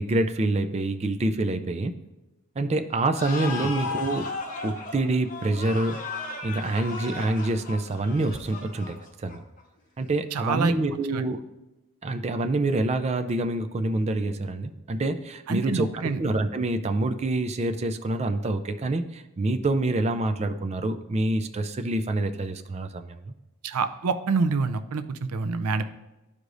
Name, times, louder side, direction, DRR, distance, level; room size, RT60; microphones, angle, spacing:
voice 1, 0.0-2.0 2.6-4.3 4.6-6.0 6.4-9.4 10.0-11.4 12.0-15.9 16.2-23.3, right 2 dB, 30° right, 8 dB, 0.4 m, -26 dB
sound 1, 3.1-9.6, left 3 dB, 40° left, 1.0 m, -35 dB
voice 2, 10.3-11.2 15.5-16.2 23.6-25.8, right 4 dB, 90° right, 10 dB, 0.5 m, -27 dB
12.0 x 4.8 x 2.6 m, 1.0 s
head